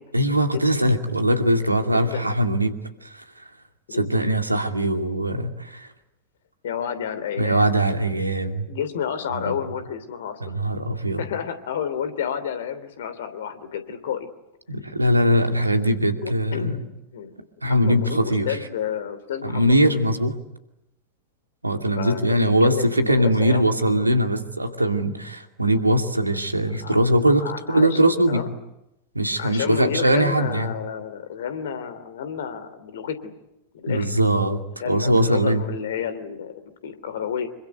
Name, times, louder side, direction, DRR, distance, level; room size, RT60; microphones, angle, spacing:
voice 1, 0.1-3.4 3.9-5.9 7.4-8.7 9.3-9.5 10.4-11.2 14.7-16.8 17.6-18.6 19.4-20.3 21.6-28.4 29.1-30.7 33.9-34.6 34.9-35.6, right 1 dB, 85° right, 6 dB, 2.4 m, -21 dB
voice 2, 1.8-2.3 3.9-4.1 6.6-7.7 8.7-10.6 11.2-14.3 16.2-17.4 17.7-20.0 22.0-23.7 26.8-27.0 27.4-28.0 28.3-28.5 29.4-33.3 33.7-34.1 34.8-37.5, left 8 dB, 60° left, 12 dB, 2.9 m, -30 dB
26.5 x 24.0 x 9.4 m, 0.89 s
figure-of-eight pair, 90°, 0 cm